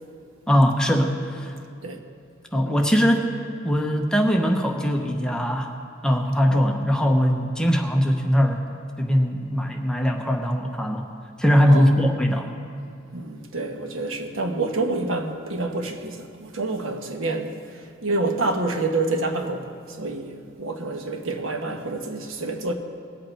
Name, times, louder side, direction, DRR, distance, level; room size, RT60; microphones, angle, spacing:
voice 1, 0.5-1.5 2.5-3.3 3.6-5.7 6.0-8.6 9.0-11.0 11.4-12.5, equal, 5° left, 2 dB, 0.8 m, -21 dB
voice 2, 13.1-22.7, right 2 dB, 80° right, 5 dB, 1.0 m, -28 dB
20.0 x 8.1 x 4.5 m, 2.3 s
head